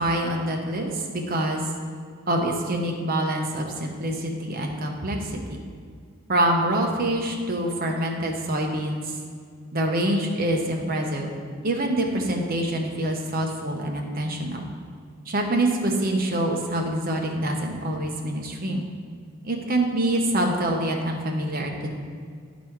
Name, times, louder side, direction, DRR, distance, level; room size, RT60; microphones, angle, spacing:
voice 1, 0.0-1.6 2.3-5.3 6.3-9.0 9.7-11.3 11.6-14.7 15.3-18.9 19.4-21.9, right 1 dB, 45° right, 1 dB, 0.9 m, -25 dB
10.5 x 4.2 x 4.6 m, 2.1 s
head